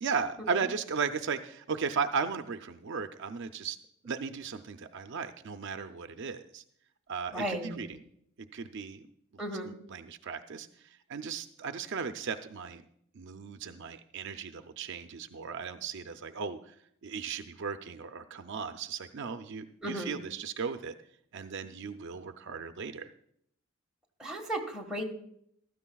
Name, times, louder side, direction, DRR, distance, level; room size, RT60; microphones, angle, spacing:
voice 1, 0.0-3.8 4.0-6.6 7.1-8.0 8.4-9.0 9.3-10.7 11.1-12.8 13.2-16.6 17.0-20.9 21.3-23.1, right 5 dB, 60° right, 8 dB, 0.5 m, -36 dB
voice 2, 7.3-7.8 9.4-9.7 19.8-20.2 24.2-25.0, right 1 dB, 5° right, -1 dB, 1.5 m, -35 dB
15.5 x 13.0 x 2.3 m, 0.70 s
head